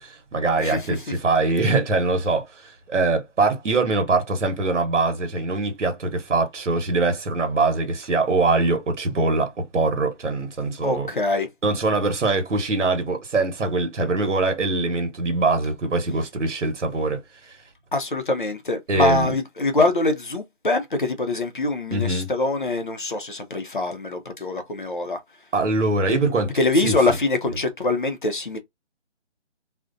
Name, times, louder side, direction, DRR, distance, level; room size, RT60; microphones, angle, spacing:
voice 1, 0.0-11.1 11.6-17.5 18.9-19.3 21.9-22.3 25.5-26.5 26.8-26.9, right 3 dB, 75° right, 1.0 m, -23 dB
voice 2, 0.6-1.0 10.8-11.5 14.0-14.1 17.9-25.2 26.5-28.6, left 2 dB, 45° left, 0.5 m, -24 dB
2.5 x 2.1 x 2.5 m
hypercardioid pair, 170°, 36 cm